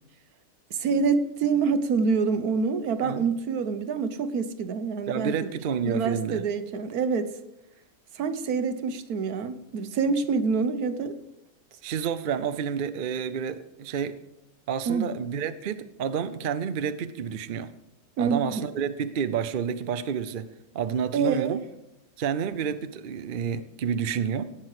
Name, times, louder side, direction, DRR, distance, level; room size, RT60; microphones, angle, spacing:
voice 1, 0.7-5.3 5.8-7.3 8.2-11.1 14.9-15.1 18.2-18.7 21.1-21.6, right 5 dB, 75° right, 1.4 m, -26 dB
voice 2, 5.1-6.4 11.8-14.2 14.7-17.7 18.2-21.6 22.2-24.5, right 7 dB, 55° right, 0.6 m, -29 dB
18.0 x 6.1 x 4.9 m
omnidirectional pair, 1.6 m